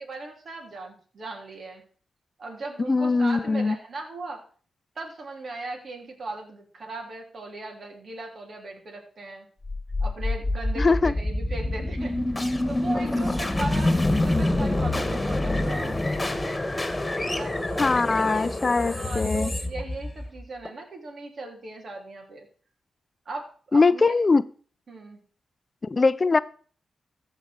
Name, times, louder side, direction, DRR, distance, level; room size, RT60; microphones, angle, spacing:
voice 1, 0.0-1.9 2.4-4.4 4.9-9.5 10.0-12.1 12.7-16.0 17.1-22.5 23.2-24.1 24.9-25.2, right 2 dB, 60° right, 1 dB, 3.3 m, -38 dB
voice 2, 2.9-3.8 10.8-11.1 17.8-19.5 23.7-24.4 25.8-26.4, left 3 dB, 40° left, 16 dB, 0.6 m, -21 dB
sound 1, 9.6-20.7, left 1 dB, 20° left, 1.7 m, -26 dB
14.0 x 4.8 x 6.4 m, 0.43 s
supercardioid pair, 50°, 0 cm